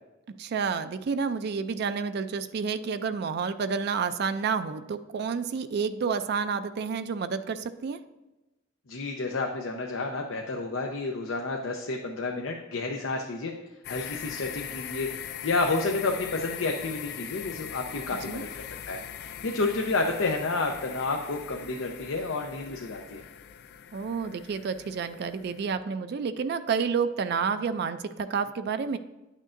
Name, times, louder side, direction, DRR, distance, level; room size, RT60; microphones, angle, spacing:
voice 1, 0.4-8.0 18.3-18.4 23.9-29.0, right 5 dB, 55° right, 10 dB, 0.3 m, -29 dB
voice 2, 8.9-13.5 13.9-23.2, left 3 dB, 90° left, 2 dB, 0.7 m, -30 dB
sound 1, 13.8-25.8, left 9 dB, 55° left, 0.3 m, -41 dB
10.0 x 6.4 x 2.5 m, 1.0 s
head